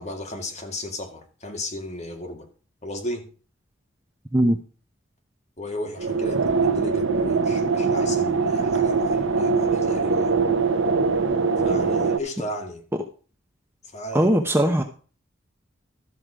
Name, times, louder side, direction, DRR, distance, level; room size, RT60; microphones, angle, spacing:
voice 1, 0.0-2.5 2.8-3.3 5.6-10.3 11.6-12.8 13.9-14.3, left 1 dB, 35° left, 2.0 m, -35 dB
sound 1, 6.0-12.2, right 4 dB, 80° right, 0.8 m, -22 dB
voice 2, 14.1-14.8, right 1 dB, 10° right, 0.8 m, -19 dB
13.0 x 6.4 x 5.0 m
head